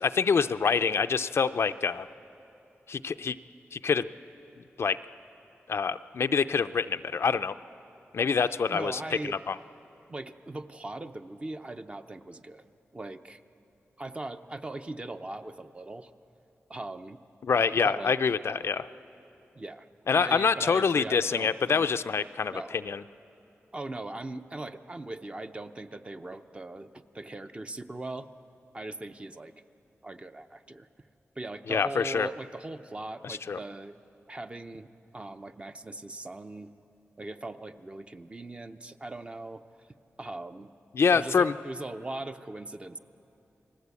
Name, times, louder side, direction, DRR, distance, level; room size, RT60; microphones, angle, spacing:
voice 1, 0.0-2.1 2.9-3.4 3.7-4.1 4.8-5.0 5.7-7.5 8.1-9.0 9.5-9.6 17.4-18.9 20.1-23.0 31.7-32.3 33.2-33.6 40.9-41.5, left 5 dB, 65° left, 11 dB, 0.5 m, -26 dB
voice 2, 8.7-9.4 10.1-12.7 12.9-13.4 14.0-16.1 16.7-17.2 17.8-18.3 19.5-19.9 20.1-21.9 22.5-22.8 23.7-28.3 28.7-29.5 30.0-30.9 31.4-34.0 34.3-36.7 37.2-39.9 40.2-40.7 41.1-43.0, right 2 dB, 25° right, 8 dB, 0.7 m, -40 dB
29.5 x 20.0 x 8.3 m, 3.0 s
wide cardioid pair, 125°, 5 cm